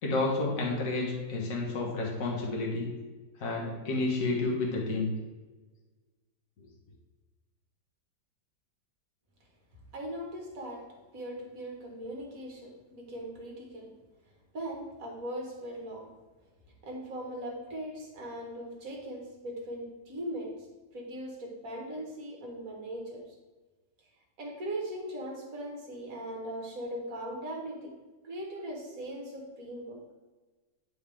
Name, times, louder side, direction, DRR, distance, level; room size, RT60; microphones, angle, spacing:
voice 1, 0.0-2.9 3.4-5.1, left 3 dB, 55° left, -2 dB, 1.7 m, -30 dB
voice 2, 9.9-10.8 11.1-13.9 14.5-16.1 16.8-20.5 20.9-23.2 24.4-28.0 28.2-30.0, right 1 dB, 55° right, 0 dB, 1.9 m, -39 dB
9.2 x 5.0 x 3.4 m, 1.3 s
omnidirectional pair, 1.8 m